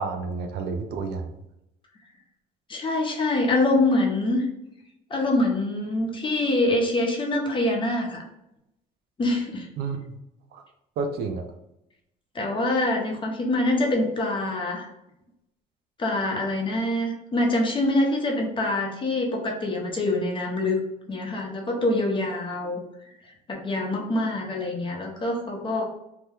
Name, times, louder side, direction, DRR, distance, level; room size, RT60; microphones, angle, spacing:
voice 1, 0.0-1.3 9.8-10.0 10.5-10.6 11.0-11.4, right 4 dB, 75° right, 5 dB, 0.5 m, -30 dB
voice 2, 2.7-4.4 5.1-8.2 9.2-9.7 12.3-14.9 16.0-20.8 21.1-22.8 23.5-25.8, left 2 dB, 30° left, 0 dB, 0.8 m, -25 dB
2.9 x 2.2 x 3.4 m, 0.85 s
cardioid pair, 110°, 17 cm